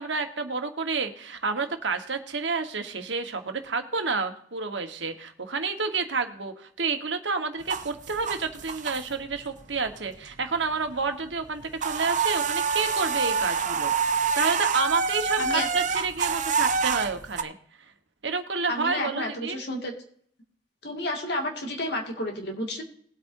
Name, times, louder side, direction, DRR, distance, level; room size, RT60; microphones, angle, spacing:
voice 1, 0.0-13.9 14.2-17.5 18.2-19.6, right 4 dB, 85° right, 6 dB, 1.4 m, -29 dB
sound 1, 7.6-9.4 9.8-10.6 10.9-11.1 11.3-17.4, right 5 dB, 45° right, 0.6 m, -27 dB
voice 2, 18.7-19.9 20.8-22.8, left 1 dB, 65° left, 1 dB, 2.3 m, -31 dB
20.5 x 8.5 x 2.7 m, 0.63 s
head